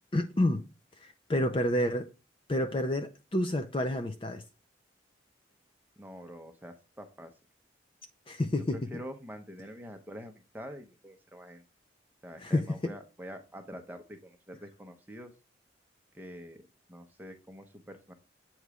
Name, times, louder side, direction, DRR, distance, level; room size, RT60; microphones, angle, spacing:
voice 1, 0.1-0.6 1.0-2.1 2.5-4.4 8.3-8.8 12.4-12.9, left 1 dB, 25° left, 0.5 m, -29 dB
voice 2, 6.0-7.3 8.6-11.6 12.2-15.3 16.1-18.1, equal, 10° right, 0.8 m, -46 dB
8.0 x 3.1 x 4.8 m
head